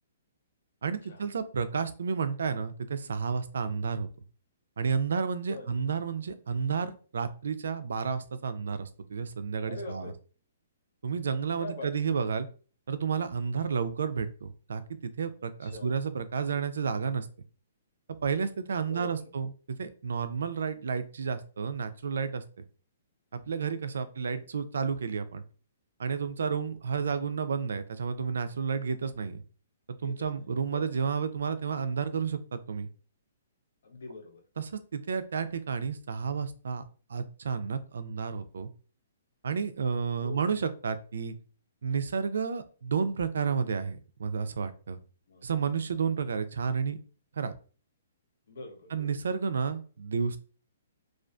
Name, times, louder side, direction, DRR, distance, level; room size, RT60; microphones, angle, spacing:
voice 1, 0.8-4.1 4.8-10.1 11.0-12.5 12.9-17.3 18.2-22.4 23.3-25.4 26.0-29.4 30.0-32.9 34.6-36.8 37.1-38.7 39.4-41.3 41.8-45.0 45.4-47.0 47.4-47.5 48.9-50.4, right 6 dB, 85° right, 12 dB, 0.3 m, -31 dB
voice 2, 9.7-10.1 11.6-11.9 13.5-13.7 15.6-16.0 18.9-19.5 24.3-24.5 26.4-26.6 30.0-31.1 33.8-34.4 40.2-40.5 45.3-45.5 48.5-49.2, left 2 dB, 70° left, 3 dB, 0.7 m, -44 dB
2.5 x 2.3 x 2.2 m, 0.38 s
hypercardioid pair, 165°, 0 cm